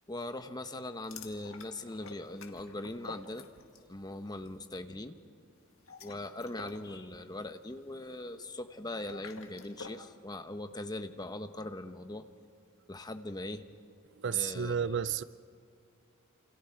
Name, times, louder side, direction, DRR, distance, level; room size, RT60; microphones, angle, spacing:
voice 1, 0.1-3.5 3.9-5.2 6.0-12.3 12.9-13.6 14.3-15.1, left 2 dB, 20° left, 1.0 m, -41 dB
sound 1, 1.0-3.9 4.2-4.5 5.7-10.1, left 3 dB, 70° left, 1.8 m, -50 dB
voice 2, 14.2-15.2, right 7 dB, 60° right, 0.6 m, -31 dB
28.5 x 27.5 x 4.7 m
head